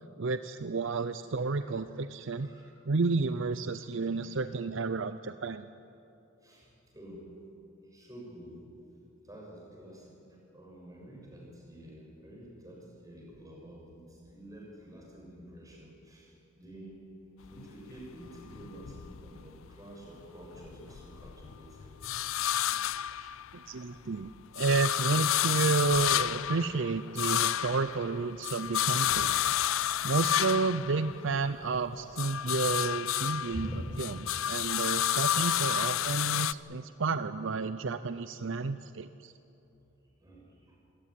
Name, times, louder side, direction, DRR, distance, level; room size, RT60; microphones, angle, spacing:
voice 1, 0.2-2.5 2.9-5.7 23.2-24.3 24.5-29.3 30.0-33.7 34.0-39.3, right 4 dB, 60° right, 12 dB, 0.6 m, -31 dB
voice 2, 2.4-2.8 3.9-4.3 6.4-7.3 7.9-8.7 9.2-10.2 10.5-17.0 17.5-22.1 29.4-30.2 33.5-33.8 35.4-35.6 40.2-40.7, equal, 15° right, -2 dB, 6.3 m, -48 dB
sound 1, 17.4-19.8 20.2-23.8 24.2-31.7 32.0-36.5, left 11 dB, 70° left, 0.5 m, -31 dB
27.5 x 15.5 x 10.0 m, 2.9 s
head